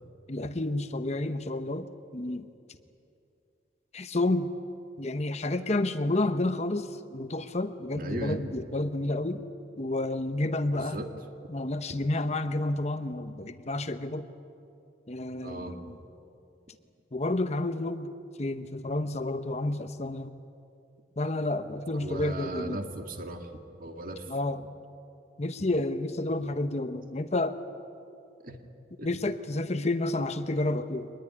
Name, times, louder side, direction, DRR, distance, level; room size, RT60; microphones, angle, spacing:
voice 1, 0.3-2.5 3.9-4.5 5.0-9.4 9.8-11.0 11.5-14.3 15.1-16.0 17.1-18.1 18.4-20.3 21.2-22.8 24.3-24.6 25.4-27.6 29.0-31.1, left 2 dB, 40° left, 10 dB, 0.9 m, -30 dB
voice 2, 7.9-8.5 10.7-11.1 15.4-15.8 22.0-23.5 23.8-24.3 28.4-28.6 29.0-29.1, right 1 dB, 50° right, 5 dB, 2.1 m, -37 dB
24.0 x 20.5 x 9.8 m, 2.6 s
head